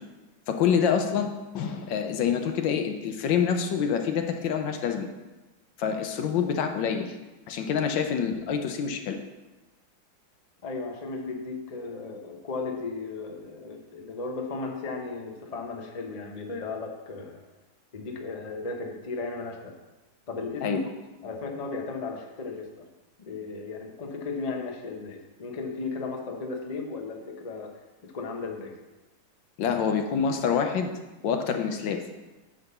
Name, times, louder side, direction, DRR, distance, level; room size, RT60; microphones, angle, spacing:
voice 1, 0.5-5.1 5.8-7.1 7.5-9.2 20.6-20.8 29.6-30.9 31.2-32.0, left 7 dB, 75° left, 5 dB, 1.5 m, -26 dB
voice 2, 10.6-17.4 17.9-19.7 20.3-20.8 21.2-22.8 23.2-27.7 28.0-28.8, left 3 dB, 35° left, 2 dB, 0.6 m, -35 dB
9.7 x 3.9 x 6.7 m, 1.1 s
omnidirectional pair, 2.2 m